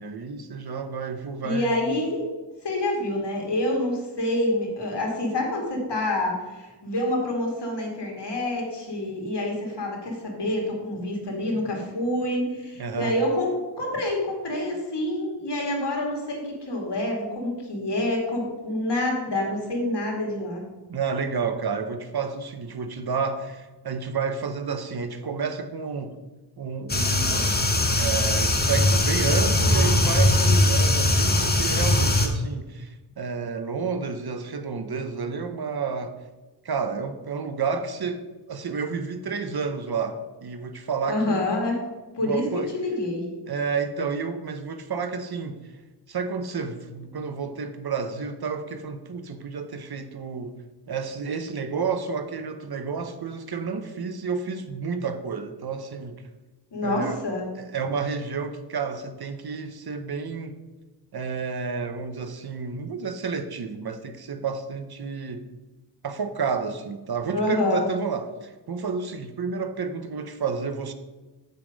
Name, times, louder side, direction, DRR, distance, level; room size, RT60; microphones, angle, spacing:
voice 1, 0.0-1.8 12.8-13.2 20.9-26.1 26.6-27.5 28.0-36.1 36.6-41.4 42.2-42.7 43.5-45.6 46.1-50.6 50.9-56.2 56.8-57.2 57.6-60.5 61.1-65.4 66.0-70.9, right 5 dB, 65° right, 8 dB, 0.9 m, -30 dB
voice 2, 1.4-2.3 2.6-20.7 41.0-41.8 42.1-43.3 56.7-57.5 67.3-67.8, left 1 dB, 80° left, -1 dB, 2.6 m, -27 dB
sound 1, 26.9-32.3, left 1 dB, 25° left, 1.1 m, -21 dB
8.1 x 6.8 x 5.2 m, 1.2 s
wide cardioid pair, 120°, 41 cm